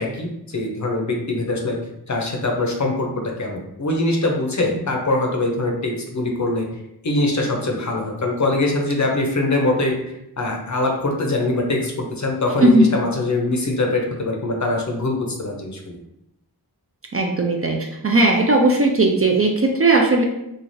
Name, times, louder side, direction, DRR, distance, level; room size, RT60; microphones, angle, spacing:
voice 1, 0.0-1.8 2.1-6.7 7.0-10.0 10.4-16.0, left 2 dB, 45° left, 1 dB, 0.6 m, -23 dB
voice 2, 17.1-20.2, right 2 dB, 35° right, 2 dB, 0.4 m, -17 dB
3.2 x 2.3 x 2.6 m, 0.83 s
wide cardioid pair, 65°, 41 cm